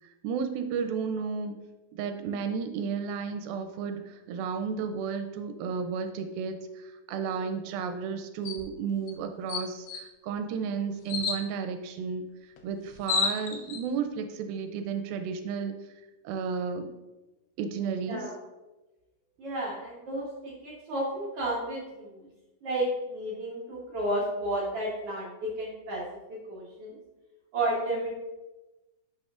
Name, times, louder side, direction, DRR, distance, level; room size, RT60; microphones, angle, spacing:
voice 1, 0.2-1.6 1.9-12.3 12.6-15.7 16.2-16.9 17.6-18.3, right 6 dB, 85° right, 7 dB, 2.4 m, -33 dB
sound 1, 8.5-8.7 9.1-9.2 9.5-10.0 11.1-11.4 12.6-12.7 12.9-13.8, left 5 dB, 90° left, 2.8 m, -30 dB
voice 2, 19.4-22.3 22.6-27.0 27.5-28.1, right 1 dB, 65° right, -4 dB, 1.5 m, -32 dB
10.5 x 6.3 x 2.4 m, 1.1 s
omnidirectional pair, 4.2 m